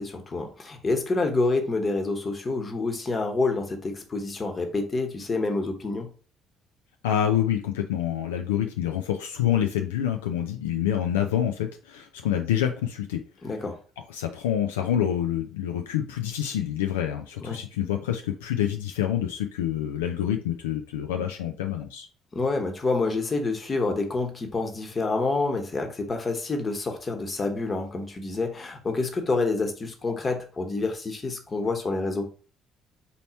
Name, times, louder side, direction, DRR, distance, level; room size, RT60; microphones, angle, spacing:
voice 1, 0.0-6.1 13.4-13.8 17.4-17.6 22.3-32.2, left 3 dB, 30° left, 4 dB, 1.1 m, -28 dB
voice 2, 7.0-13.2 14.1-22.1, left 10 dB, 75° left, 5 dB, 0.4 m, -27 dB
4.0 x 2.8 x 4.3 m, 0.37 s
figure-of-eight pair, 50°, 0 cm